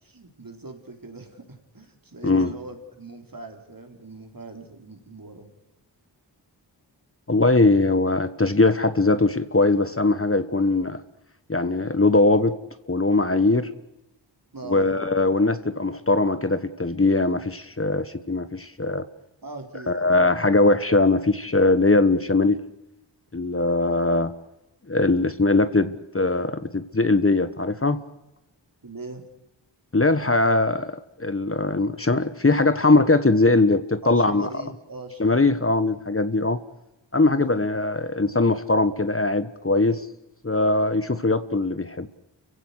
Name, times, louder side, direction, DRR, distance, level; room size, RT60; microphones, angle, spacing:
voice 1, 0.0-5.5 14.5-15.2 19.4-20.3 28.8-29.2 34.0-35.6 37.3-37.7, right 3 dB, 50° right, 5 dB, 4.0 m, -41 dB
voice 2, 7.3-11.0 11.5-12.6 12.9-13.7 14.7-19.0 19.9-22.6 23.3-24.3 24.9-28.0 29.9-30.9 31.2-34.5 35.2-36.6 37.1-40.0 40.4-42.1, left 2 dB, 30° left, 12 dB, 1.3 m, -21 dB
29.5 x 16.0 x 8.1 m, 0.90 s
cardioid pair, 45°, 44 cm